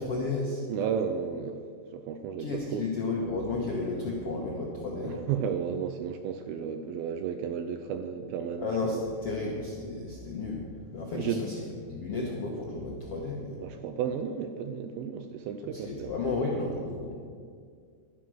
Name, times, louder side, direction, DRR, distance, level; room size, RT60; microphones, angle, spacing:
voice 1, 0.0-0.6 2.4-5.2 8.6-10.6 10.9-11.6 11.9-13.6 15.6-17.2, left 3 dB, 70° left, -2 dB, 1.4 m, -32 dB
voice 2, 0.7-1.6 1.9-2.8 5.0-9.0 11.1-11.4 13.6-16.2, right 7 dB, 80° right, 8 dB, 2.3 m, -33 dB
11.5 x 11.5 x 6.2 m, 2.1 s
omnidirectional pair, 4.7 m